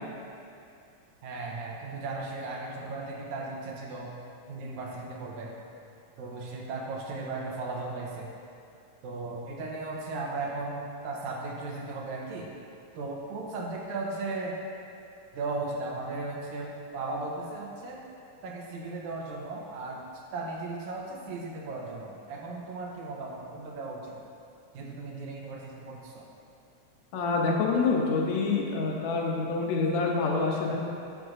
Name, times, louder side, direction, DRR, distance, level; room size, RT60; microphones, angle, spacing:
voice 1, 1.2-4.1 4.5-5.5 6.2-8.3 9.0-12.5 13.0-14.6 15.3-18.0 18.4-24.2 24.7-26.3, right 3 dB, 85° right, -2 dB, 2.2 m, -36 dB
voice 2, 27.1-30.8, left 4 dB, 75° left, -1 dB, 2.0 m, -26 dB
9.2 x 6.5 x 2.5 m, 2.6 s
omnidirectional pair, 3.3 m